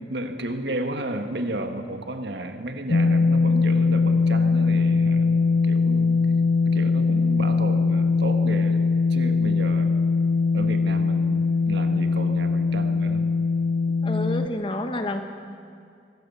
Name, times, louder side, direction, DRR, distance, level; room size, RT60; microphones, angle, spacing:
voice 1, 0.0-6.1 6.7-8.8 9.1-10.0 10.5-13.3, right 1 dB, 65° right, 6 dB, 1.8 m, -33 dB
sound 1, 2.9-14.5, left 4 dB, 55° left, 0.6 m, -21 dB
voice 2, 14.0-15.2, left 1 dB, 30° left, 6 dB, 1.6 m, -29 dB
25.0 x 17.5 x 7.2 m, 2.4 s
head